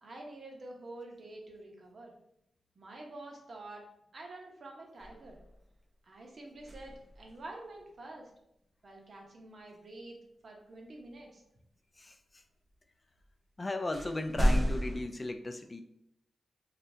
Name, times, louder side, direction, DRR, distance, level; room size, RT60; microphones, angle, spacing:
voice 1, 0.0-2.1 2.8-3.8 4.1-5.4 6.1-8.3 8.8-10.2 10.4-11.4, right 2 dB, 60° right, 0 dB, 0.8 m, -48 dB
sound 1, 5.0-5.8 6.5-7.5 11.0-11.1 13.2-13.3 13.9-15.0, equal, 35° right, 0.5 m, -32 dB
voice 2, 13.6-15.8, left 2 dB, 30° left, 7 dB, 0.3 m, -36 dB
3.3 x 2.4 x 2.7 m, 0.79 s
cardioid pair, 55°, 0 cm